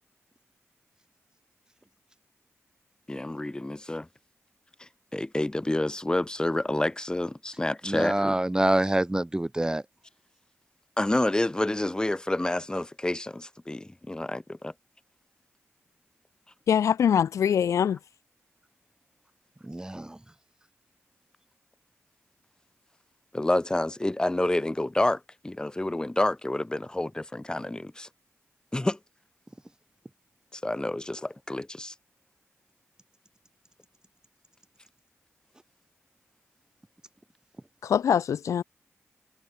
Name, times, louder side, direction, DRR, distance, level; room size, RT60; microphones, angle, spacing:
voice 1, 3.1-4.1 5.1-8.4 11.0-14.7 23.3-28.1 28.7-29.0 30.5-31.9, left 1 dB, 15° left, 0.9 m, -28 dB
voice 2, 7.8-9.8 19.6-20.2, right 1 dB, 15° right, 0.8 m, -26 dB
voice 3, 16.7-18.0 37.8-38.6, left 8 dB, 80° left, 0.3 m, -23 dB
cardioid pair, 70°, 5 cm